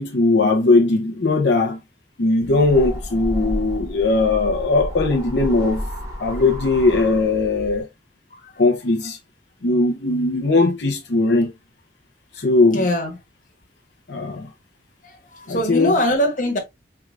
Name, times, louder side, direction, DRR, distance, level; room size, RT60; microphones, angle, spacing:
voice 1, 0.0-1.8 2.2-5.8 6.2-7.8 8.6-9.2 9.6-11.5 12.4-12.8 14.1-14.5 15.5-15.9, left 3 dB, 80° left, 0.7 m, -19 dB
sound 1, 2.4-7.8, equal, 20° right, 1.3 m, -31 dB
voice 2, 8.3-8.6 12.3-12.5 12.7-13.2 15.0-16.6, equal, 45° left, 1.2 m, -23 dB
4.6 x 3.5 x 2.3 m
head